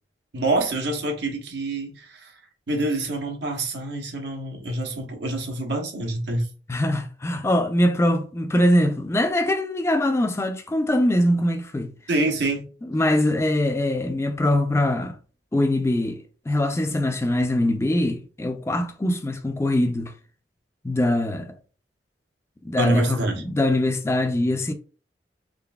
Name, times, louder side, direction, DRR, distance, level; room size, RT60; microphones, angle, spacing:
voice 1, 0.3-2.4 2.7-6.5 12.1-12.7 22.8-23.4, right 2 dB, 80° right, 1.0 m, -26 dB
voice 2, 6.7-11.9 12.8-15.2 15.5-20.1 20.8-21.5 22.6-23.2 23.4-24.7, left 1 dB, 15° left, 0.3 m, -22 dB
3.8 x 3.3 x 2.3 m
head